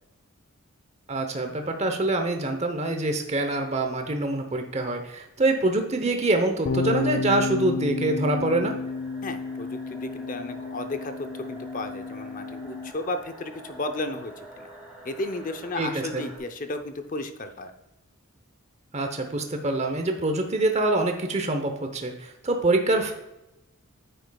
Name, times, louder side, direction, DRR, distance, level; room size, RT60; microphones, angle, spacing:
voice 1, 1.1-8.8 15.8-16.2 18.9-23.1, right 2 dB, 30° right, 5 dB, 0.8 m, -25 dB
sound 1, 6.7-12.9, left 4 dB, 75° left, 0.8 m, -31 dB
sound 2, 8.8-16.4, right 1 dB, 5° right, 1.6 m, -46 dB
voice 2, 9.2-14.7 15.0-17.7, left 2 dB, 40° left, 8 dB, 0.6 m, -34 dB
9.5 x 7.8 x 2.3 m, 0.93 s
head